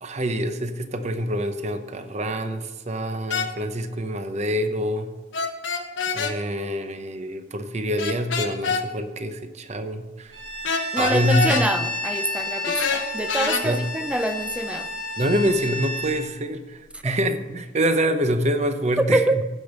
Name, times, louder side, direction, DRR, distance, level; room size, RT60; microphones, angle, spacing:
voice 1, 0.0-5.1 6.1-10.4 11.0-11.7 13.6-13.8 15.2-19.4, equal, 35° right, 8 dB, 0.8 m, -26 dB
sound 1, 3.3-3.5 5.3-6.3 8.0-8.8 10.6-11.7 12.6-13.6, left 5 dB, 75° left, 1.0 m, -25 dB
Bowed string instrument, 10.3-16.2, left 1 dB, 80° right, 3.8 m, -31 dB
voice 2, 10.9-14.9 17.0-17.2 19.0-19.4, right 1 dB, 5° right, 10 dB, 0.5 m, -25 dB
15.0 x 5.2 x 5.4 m, 1.1 s
head